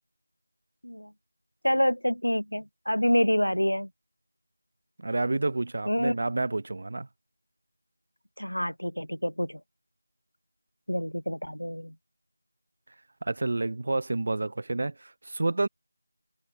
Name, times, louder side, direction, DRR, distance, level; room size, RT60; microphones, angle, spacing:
voice 1, 1.6-3.9 5.9-6.1 8.4-9.6 10.9-11.9, equal, 80° left, 0.5 m, -27 dB
voice 2, 5.0-7.1 13.2-15.7, right 2 dB, 35° right, 0.6 m, -29 dB
figure-of-eight pair, 170°, 0 cm